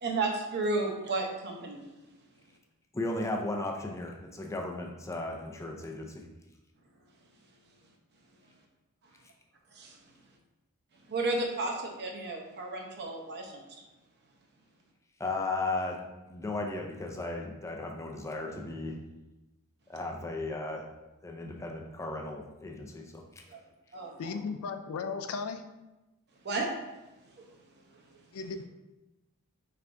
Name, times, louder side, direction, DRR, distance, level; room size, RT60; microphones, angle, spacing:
voice 1, 0.0-1.8 9.7-9.9 11.1-13.6 23.5-23.6 23.9-24.4 26.4-26.7, right 2 dB, 50° right, 0 dB, 0.7 m, -32 dB
voice 2, 2.9-6.2 15.2-16.0 16.3-19.0 19.9-20.8 21.2-23.2, left 2 dB, 15° left, 1 dB, 0.4 m, -35 dB
voice 3, 24.2-25.6 28.3-28.6, left 5 dB, 75° left, 8 dB, 0.4 m, -35 dB
4.6 x 3.3 x 2.6 m, 1.0 s
head